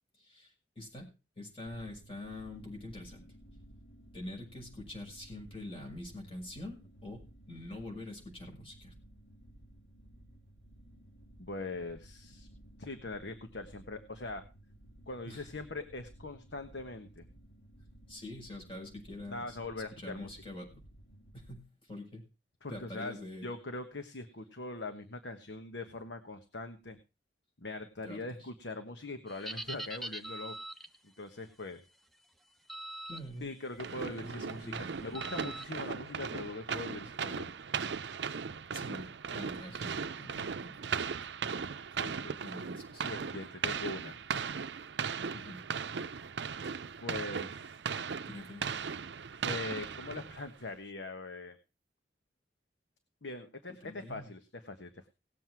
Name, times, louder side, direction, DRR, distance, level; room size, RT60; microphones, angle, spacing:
voice 1, 0.2-1.1 1.4-3.2 4.1-8.9 15.2-15.5 18.1-19.6 20.0-20.8 21.3-22.2 22.7-23.5 28.0-28.5 33.1-33.5 34.2-34.9 38.7-41.3 42.4-43.1 45.3-45.6 48.2-48.9 53.7-54.3, left 1 dB, 30° left, 1 dB, 5.9 m, -45 dB
sound 1, 1.7-21.6, right 1 dB, 60° left, 3.4 m, -56 dB
voice 2, 11.4-12.5 12.8-14.4 15.1-17.2 19.3-20.3 22.6-27.0 27.6-30.5 31.2-31.8 33.4-37.5 42.0-42.4 43.0-44.2 47.0-47.8 49.4-51.6 53.2-55.1, left 2 dB, 85° left, 7 dB, 1.3 m, -42 dB
sound 2, 29.3-31.0 32.7-33.2 33.7-33.9 35.1-35.7, right 1 dB, ahead, 1.0 m, -42 dB
sound 3, 33.8-50.6, right 6 dB, 80° right, 0.6 m, -38 dB
18.5 x 7.7 x 4.7 m, 0.30 s
head